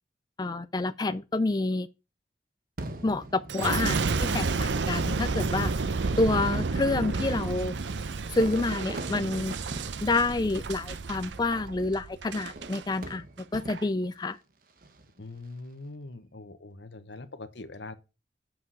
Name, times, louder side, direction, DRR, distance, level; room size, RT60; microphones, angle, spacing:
voice 1, 0.4-1.9 3.0-5.7 6.2-7.7 8.3-9.5 10.0-13.2 13.5-14.4, left 2 dB, 25° left, 0.4 m, -28 dB
Fireworks, 2.8-4.4 5.2-5.3 6.0-11.3 12.4-14.1 14.7-15.2, right 1 dB, 50° right, 1.2 m, -42 dB
Boom, 3.5-12.8 13.4-13.8, right 4 dB, 90° right, 0.7 m, -31 dB
voice 2, 15.2-17.9, left 2 dB, 85° left, 1.1 m, -43 dB
8.0 x 5.9 x 6.3 m
head